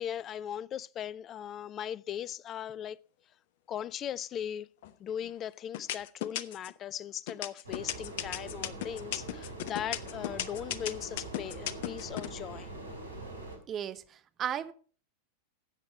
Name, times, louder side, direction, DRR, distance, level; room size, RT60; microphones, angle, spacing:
voice 1, 0.0-3.0 3.7-4.7 5.0-12.7, left 10 dB, 30° left, 0.5 m, -38 dB
sound 1, 4.8-5.3 5.7-6.8 7.3-12.3, left 12 dB, 50° left, 0.8 m, -35 dB
sound 2, 7.6-13.6, right 2 dB, 75° right, 2.9 m, -43 dB
voice 2, 13.7-14.7, right 9 dB, 30° right, 0.9 m, -35 dB
13.5 x 8.3 x 4.3 m
figure-of-eight pair, 90°, 0 cm